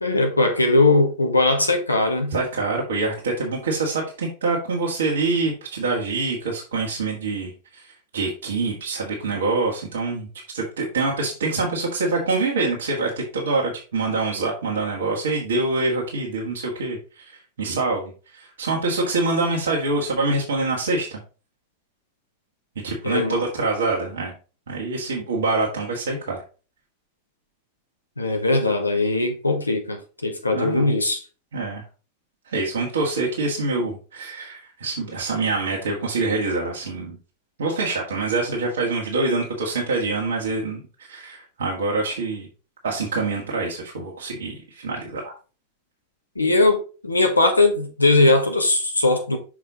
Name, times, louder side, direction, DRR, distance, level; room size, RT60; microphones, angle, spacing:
voice 1, 0.0-2.3 23.0-23.4 28.2-31.2 46.3-49.4, left 2 dB, 80° left, 1.4 m, -20 dB
voice 2, 2.3-10.3 10.5-21.2 22.8-24.3 24.7-26.4 30.5-30.9 31.5-31.8 32.5-37.2 37.6-42.5 42.8-45.3, right 3 dB, 65° right, 1.7 m, -25 dB
6.3 x 4.8 x 3.8 m
figure-of-eight pair, 90°, 0 cm